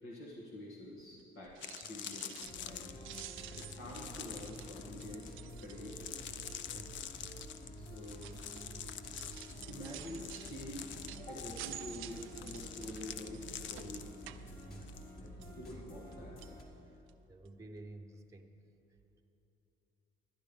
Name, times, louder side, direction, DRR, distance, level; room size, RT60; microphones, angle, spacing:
voice 1, 0.0-2.9 3.5-5.3 5.6-6.6 7.8-8.4 9.7-14.1 15.6-16.5, left 1 dB, 85° left, -4 dB, 1.6 m, -47 dB
sound 1, 1.0-1.1 1.5-15.0 15.3-15.6, left 10 dB, 70° left, 0.5 m, -47 dB
sound 2, 1.4-2.8 3.0-6.2 6.5-6.9 7.6-15.1 15.4-16.1 16.4-16.6 17.1-17.2 17.5-17.6, right 13 dB, 85° right, 0.4 m, -51 dB
sound 3, 2.4-16.6, equal, 50° left, 1.9 m, -50 dB
voice 2, 6.7-7.3 14.6-15.8 16.9-17.0 17.3-18.6, right 2 dB, 15° right, 2 dB, 0.7 m, -53 dB
11.5 x 10.0 x 5.2 m, 3.0 s
cardioid pair, 90°, 20 cm